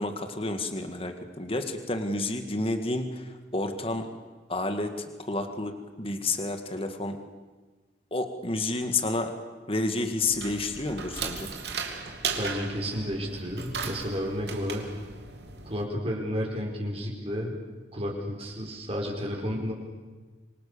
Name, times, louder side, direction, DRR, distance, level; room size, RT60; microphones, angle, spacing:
voice 1, 0.0-4.1 4.5-7.2 8.1-9.3 9.7-11.5, left 2 dB, 30° left, 7 dB, 2.1 m, -30 dB
sound 1, 10.2-15.8, right 5 dB, 60° right, 3.2 m, -36 dB
voice 2, 12.3-14.8 15.6-17.6 17.9-19.7, equal, 35° right, -1 dB, 4.9 m, -32 dB
26.5 x 25.0 x 6.9 m, 1.3 s
head